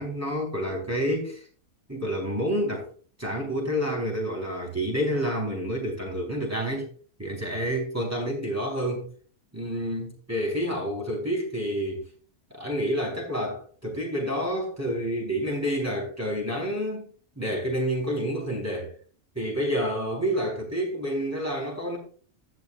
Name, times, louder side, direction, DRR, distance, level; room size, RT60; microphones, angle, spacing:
voice 1, 0.0-1.4 1.9-2.9 3.2-6.9 7.2-9.1 9.5-12.0 12.5-17.1 17.4-18.9 19.4-22.0, equal, 10° right, -1 dB, 4.1 m, -29 dB
17.0 x 6.7 x 2.5 m, 0.41 s
omnidirectional pair, 1.5 m